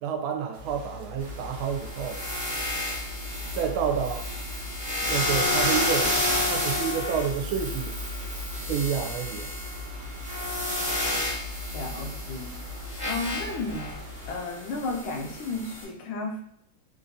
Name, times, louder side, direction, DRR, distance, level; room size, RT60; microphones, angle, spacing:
voice 1, 0.0-2.2 3.5-4.2 5.0-6.2 6.5-7.9 8.7-9.5, right 7 dB, 90° right, 4 dB, 1.4 m, -29 dB
sound 1, 0.5-14.4, left 2 dB, 75° right, 0.8 m, -43 dB
sound 2, 1.2-15.8, left 1 dB, 10° right, 0.4 m, -31 dB
voice 2, 11.7-12.5 13.1-13.9 14.3-16.4, left 3 dB, 80° left, 1 dB, 1.4 m, -33 dB
3.8 x 2.5 x 2.6 m, 0.71 s
omnidirectional pair, 2.2 m